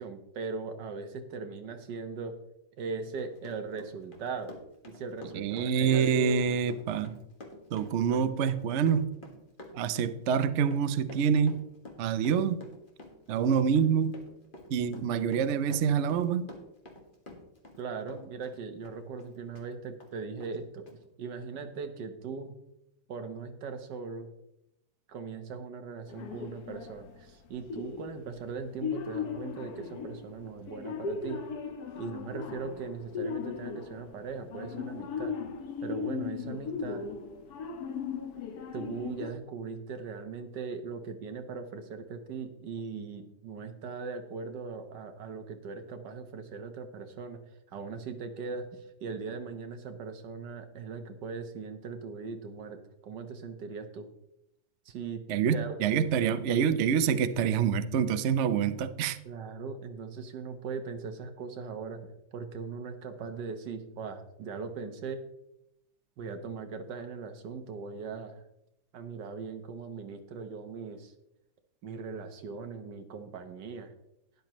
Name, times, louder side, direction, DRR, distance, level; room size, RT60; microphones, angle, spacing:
voice 1, 0.0-2.4 2.8-4.5 4.9-6.5 17.8-20.8 21.2-22.5 23.1-24.3 25.1-31.4 32.0-35.3 35.8-37.1 38.7-47.4 47.7-54.1 54.9-55.2 55.5-55.8 59.2-65.2 66.2-68.4 68.9-71.1 71.8-73.9, right 5 dB, 65° right, 7 dB, 1.6 m, -39 dB
Run, 3.0-17.8 18.1-19.7 20.0-20.1 20.4-20.6 20.9-21.0, left 1 dB, 30° left, 1.6 m, -49 dB
voice 2, 5.3-7.1 7.7-9.1 9.7-11.6 12.0-12.6 13.3-14.2 14.7-16.5 55.3-59.2, right 7 dB, 85° right, 11 dB, 0.6 m, -26 dB
sound 1, 26.1-27.2 27.7-34.2 34.5-39.3, left 6 dB, 60° left, 1.3 m, -37 dB
12.5 x 10.5 x 3.0 m, 0.85 s
omnidirectional pair, 2.1 m